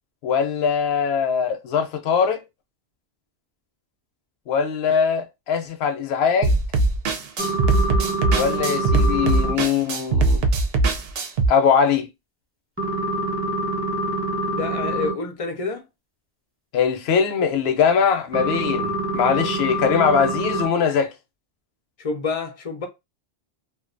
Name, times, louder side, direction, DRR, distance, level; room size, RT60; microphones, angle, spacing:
voice 1, 0.2-2.4 4.5-6.6 8.3-10.4 11.5-12.1 16.7-21.1, left 6 dB, 75° left, 0.8 m, -21 dB
sound 1, 6.4-11.5, right 3 dB, 70° right, 0.7 m, -20 dB
sound 2, 7.4-9.5 12.8-15.1 18.3-20.7, right 1 dB, 15° right, 0.6 m, -25 dB
voice 2, 14.5-15.8 22.0-22.9, left 4 dB, 45° left, 0.5 m, -28 dB
2.5 x 2.2 x 2.4 m
omnidirectional pair, 1.1 m